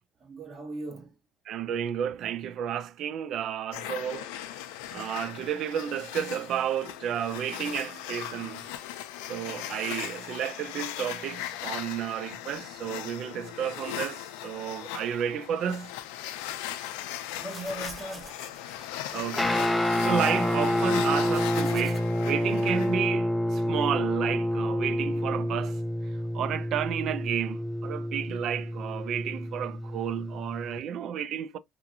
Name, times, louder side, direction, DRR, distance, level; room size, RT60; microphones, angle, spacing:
voice 1, 0.2-1.1 17.4-18.5, right 1 dB, 35° right, 1.2 m, -38 dB
voice 2, 1.5-4.5 4.9-8.7 9.3-15.9 19.1-25.8 26.3-31.6, right 9 dB, 55° right, 0.4 m, -32 dB
sound 1, 3.7-23.1, left 13 dB, 90° left, 0.4 m, -38 dB
sound 2, 17.3-22.0, right 1 dB, 10° right, 0.9 m, -49 dB
Guitar, 19.3-30.8, left 1 dB, 10° left, 0.4 m, -28 dB
2.7 x 2.5 x 2.7 m
cardioid pair, 110°, 0 cm